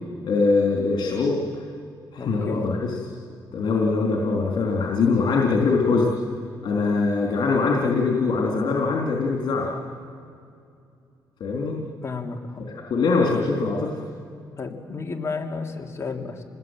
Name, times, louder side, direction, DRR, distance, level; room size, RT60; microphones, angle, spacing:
voice 1, 0.2-1.4 2.1-2.8 3.5-6.1 6.6-9.7 11.4-11.8 12.9-13.9, left 4 dB, 70° left, -2 dB, 3.9 m, -22 dB
voice 2, 2.2-2.6 12.0-12.6 14.6-16.4, left 4 dB, 35° left, 2 dB, 3.1 m, -32 dB
28.0 x 20.0 x 9.3 m, 2.4 s
cardioid pair, 85°, 8 cm